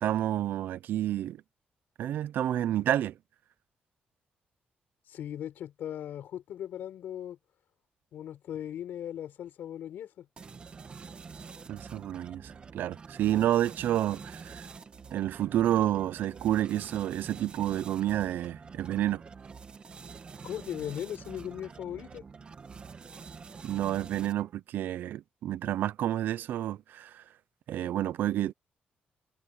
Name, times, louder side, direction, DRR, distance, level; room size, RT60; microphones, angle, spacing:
voice 1, 0.0-1.4 2.0-3.2 11.7-14.7 15.1-19.2 23.6-27.2 27.7-28.5, right 12 dB, 75° right, 0.6 m, -29 dB
voice 2, 5.1-7.4 8.1-10.3 20.4-22.2, left 10 dB, 75° left, 5.3 m, -38 dB
sound 1, 10.4-24.6, right 5 dB, 30° right, 1.6 m, -47 dB
cardioid pair, 165°, 3 cm